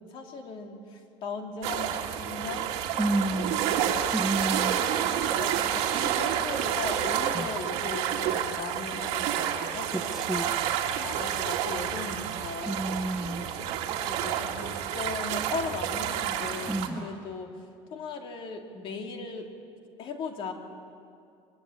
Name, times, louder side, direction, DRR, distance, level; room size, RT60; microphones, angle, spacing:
voice 1, 0.0-4.2 5.4-10.5 11.0-12.8 13.4-13.7 14.1-17.5 17.9-19.5 20.0-20.5, left 4 dB, 50° left, 3 dB, 2.7 m, -38 dB
sound 1, 1.6-16.9, right 10 dB, 70° right, 2.2 m, -29 dB
voice 2, 3.0-3.6 4.1-4.8 7.3-7.5 9.9-10.6 12.7-13.5 16.7-17.1, right 1 dB, 5° right, 5 dB, 0.8 m, -30 dB
23.0 x 22.0 x 8.6 m, 2.4 s
cardioid pair, 160°, 11 cm